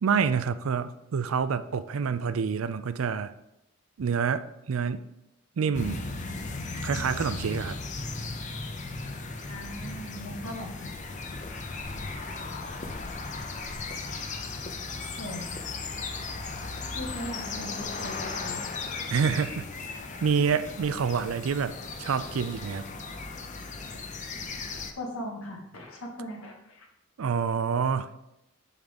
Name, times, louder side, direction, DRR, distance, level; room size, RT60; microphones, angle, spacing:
voice 1, 0.0-3.3 4.0-5.0 5.6-6.0 6.8-7.8 19.1-19.7 19.9-22.9 27.2-28.1, right 6 dB, 70° right, 13 dB, 0.4 m, -27 dB
sound 1, 5.7-24.9, left 3 dB, 35° left, 0.6 m, -36 dB
voice 2, 9.5-10.9 15.2-15.4 16.9-18.6 25.0-26.8, equal, 70° left, 0 dB, 1.6 m, -39 dB
7.2 x 3.7 x 5.2 m, 0.86 s
head